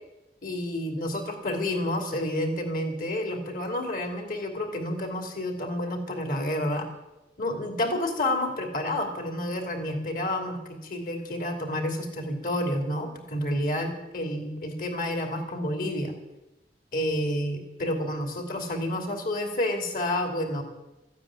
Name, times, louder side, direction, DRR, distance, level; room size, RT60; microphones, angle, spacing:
voice 1, 0.4-6.9 7.4-16.1 16.9-20.6, left 1 dB, 55° left, 4 dB, 2.8 m, -29 dB
14.5 x 9.3 x 9.9 m, 0.98 s
head